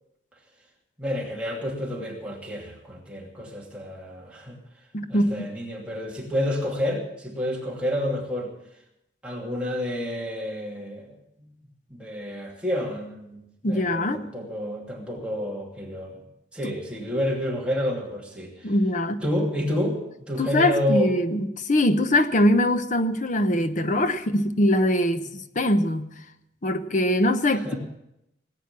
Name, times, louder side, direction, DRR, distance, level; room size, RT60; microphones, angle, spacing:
voice 1, 1.0-4.6 5.1-8.5 9.2-11.5 11.9-16.2 16.5-18.7 19.2-20.0 20.3-21.1 27.6-27.8, left 1 dB, 5° right, 2.7 m, -29 dB
voice 2, 4.9-5.5 13.6-14.2 16.6-16.7 18.6-19.2 20.4-26.1 26.6-27.8, left 1 dB, 45° left, 0.9 m, -22 dB
18.5 x 9.0 x 7.4 m
head